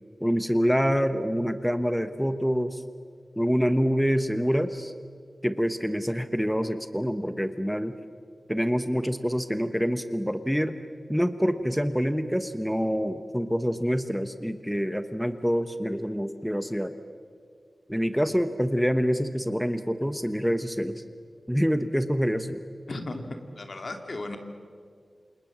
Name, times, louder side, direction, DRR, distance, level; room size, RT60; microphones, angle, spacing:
voice 1, 0.2-2.8 3.4-4.9 5.4-7.9 8.5-10.8 11.1-16.9 17.9-20.9 21.5-22.6, equal, ahead, 10 dB, 1.0 m, -26 dB
voice 2, 22.9-24.4, left 2 dB, 55° left, 5 dB, 2.6 m, -36 dB
28.5 x 27.5 x 7.4 m, 2.2 s
wide cardioid pair, 95°, 0 cm